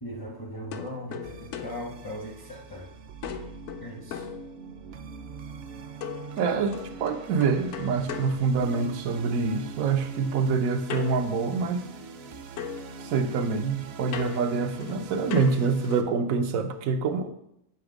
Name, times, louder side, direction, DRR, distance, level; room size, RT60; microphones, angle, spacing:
voice 1, 0.0-2.9 3.8-4.3, equal, 25° left, 0 dB, 0.5 m, -38 dB
sound 1, 0.7-2.8 3.2-5.1 6.0-9.2 10.9-12.3 12.6-16.2, left 8 dB, 70° left, 0.8 m, -40 dB
sound 2, 1.2-16.0, right 5 dB, 65° right, 0.7 m, -43 dB
voice 2, 6.4-11.9 13.0-17.3, right 5 dB, 90° right, 7 dB, 1.1 m, -26 dB
7.2 x 3.4 x 5.0 m, 0.79 s
omnidirectional pair, 1.4 m